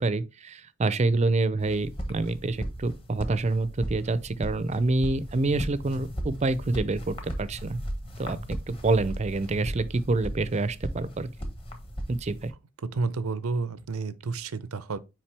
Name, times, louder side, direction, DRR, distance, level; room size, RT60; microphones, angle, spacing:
voice 1, 0.0-7.8 8.2-11.3 12.1-12.5, right 3 dB, 30° right, 0.4 m, -27 dB
sound 1, 1.6-12.5, equal, 25° left, 1.2 m, -37 dB
voice 2, 12.9-15.0, right 4 dB, 85° right, 0.6 m, -30 dB
5.8 x 5.0 x 3.3 m
head